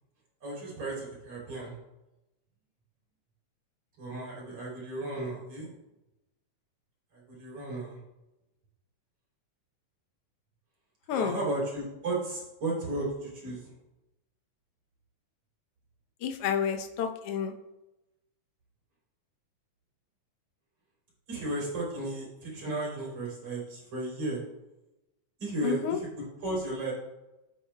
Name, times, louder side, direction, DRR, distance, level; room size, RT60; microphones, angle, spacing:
voice 1, 0.4-1.7 4.0-5.7 7.1-8.0 11.1-13.6 21.3-24.4 25.4-26.9, right 2 dB, 55° right, -5 dB, 4.3 m, -34 dB
voice 2, 16.2-17.5 25.6-26.0, left 8 dB, 65° left, 5 dB, 1.6 m, -30 dB
16.0 x 7.2 x 2.3 m, 0.97 s
omnidirectional pair, 3.3 m